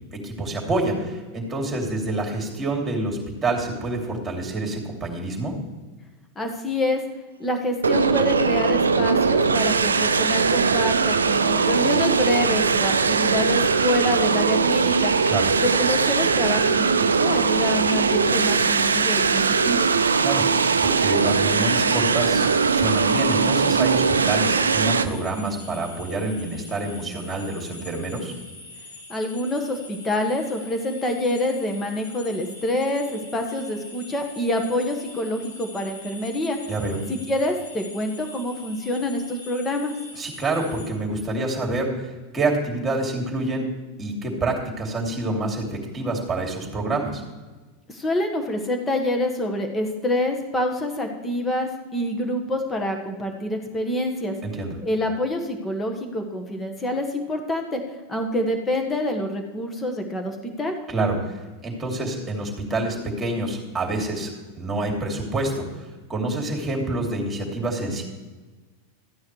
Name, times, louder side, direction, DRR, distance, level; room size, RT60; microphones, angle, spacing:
voice 1, 0.1-5.5 15.3-15.5 20.2-28.3 36.7-37.0 40.2-43.7 44.0-47.2 54.4-54.8 60.9-64.3 64.6-68.0, right 2 dB, 15° right, 0 dB, 2.9 m, -27 dB
voice 2, 6.3-7.0 7.4-15.1 15.6-19.9 29.1-36.6 37.1-39.9 47.9-54.3 54.8-57.8 58.1-60.7, left 1 dB, 15° left, 4 dB, 1.5 m, -26 dB
sound 1, 7.8-25.0, right 5 dB, 85° right, 0.5 m, -20 dB
sound 2, 21.1-40.9, left 2 dB, 75° left, 2.6 m, -43 dB
14.0 x 9.3 x 3.3 m, 1.3 s
hypercardioid pair, 90°, 0 cm